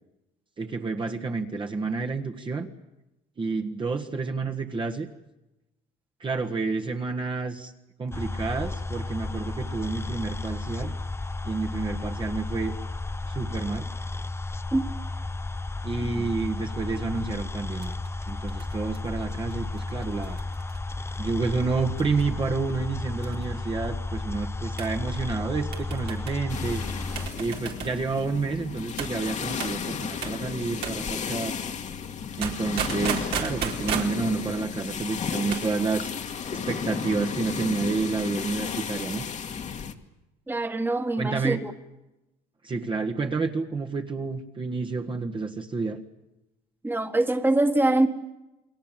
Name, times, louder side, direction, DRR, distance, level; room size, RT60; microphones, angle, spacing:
voice 1, 0.6-2.7 3.4-5.1 6.2-7.7 8.0-10.9 11.4-12.7 13.3-13.9 15.8-17.9 18.3-20.4 21.2-26.8 27.3-31.5 32.4-36.1 36.5-39.2 41.2-41.6 42.6-46.0, right 4 dB, 30° right, 1.7 m, -29 dB
sound 1, 8.1-27.3, left 2 dB, 15° left, 1.0 m, -33 dB
sound 2, 17.8-21.2 22.0-22.4 22.7-22.8 23.2-23.6 24.8-25.0 25.7-26.4 27.2-28.0 29.0-29.2 29.6-29.8 30.2-30.4 30.8-31.0 32.4-34.2 35.3-35.7 36.0-36.1, right 8 dB, 75° right, 4.1 m, -34 dB
sound 3, 26.5-39.9, left 6 dB, 45° left, 1.9 m, -33 dB
voice 2, 40.5-41.7 46.8-48.1, right 2 dB, 10° right, 1.8 m, -24 dB
29.0 x 21.5 x 7.6 m
cardioid pair, 110°, 17 cm